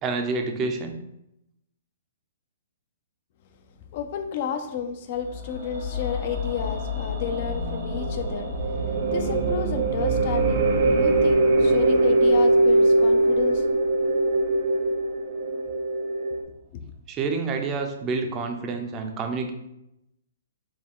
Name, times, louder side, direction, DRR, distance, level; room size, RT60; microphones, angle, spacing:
voice 1, 0.0-0.9 17.1-19.5, right 4 dB, 25° right, 4 dB, 0.6 m, -28 dB
voice 2, 3.7-13.7, left 6 dB, 45° left, 7 dB, 0.5 m, -32 dB
sound 1, 5.1-15.2 15.5-15.6, left 4 dB, 75° right, 1.1 m, -35 dB
sound 2, 6.1-16.4, right 2 dB, 55° right, 0.9 m, -22 dB
4.4 x 2.2 x 3.7 m, 0.84 s
hypercardioid pair, 140°, 0 cm